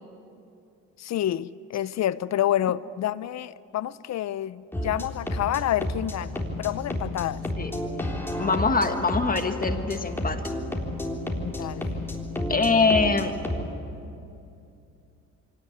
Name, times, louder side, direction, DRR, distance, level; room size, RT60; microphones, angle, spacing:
voice 1, 1.0-7.4 11.3-12.0, left 12 dB, 60° left, 17 dB, 0.6 m, -28 dB
sound 1, 4.7-13.7, left 1 dB, 5° left, 3.6 m, -31 dB
voice 2, 8.4-10.4 12.5-13.3, left 4 dB, 30° left, 7 dB, 1.5 m, -23 dB
24.5 x 18.0 x 9.7 m, 2.6 s
cardioid pair, 90°, 30 cm